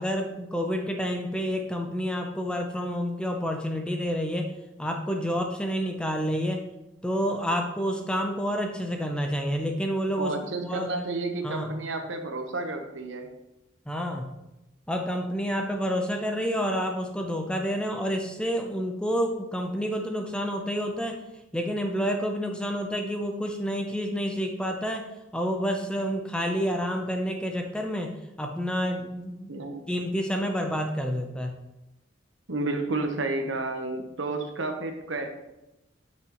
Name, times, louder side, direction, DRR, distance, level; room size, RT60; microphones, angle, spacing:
voice 1, 0.0-4.5 4.8-6.7 7.0-10.3 10.6-10.9 11.4-11.7 13.9-14.3 14.9-21.2 21.5-25.1 25.3-31.5, equal, 5° left, 3 dB, 0.5 m, -29 dB
voice 2, 10.2-13.3 29.5-29.8 32.5-35.3, right 2 dB, 70° right, 4 dB, 1.0 m, -31 dB
8.7 x 6.2 x 3.0 m, 0.95 s
head